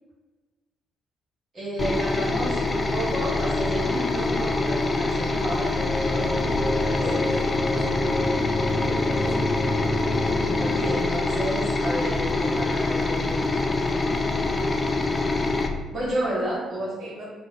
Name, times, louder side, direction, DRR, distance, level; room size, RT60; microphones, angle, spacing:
voice 1, 1.5-6.3 6.7-7.2 10.6-14.0 15.9-17.0, right 1 dB, 40° right, -8 dB, 0.9 m, -31 dB
sound 1, 1.8-15.7, left 3 dB, 30° left, 0.3 m, -25 dB
sad pattern drone, 5.8-10.9, left 1 dB, 15° right, 0.6 m, -29 dB
voice 2, 6.8-7.5 7.8-8.0 8.8-9.5 16.2-16.4 17.0-17.2, equal, 60° right, -7 dB, 1.1 m, -38 dB
2.7 x 2.1 x 3.5 m, 1.3 s
figure-of-eight pair, 40°, 0 cm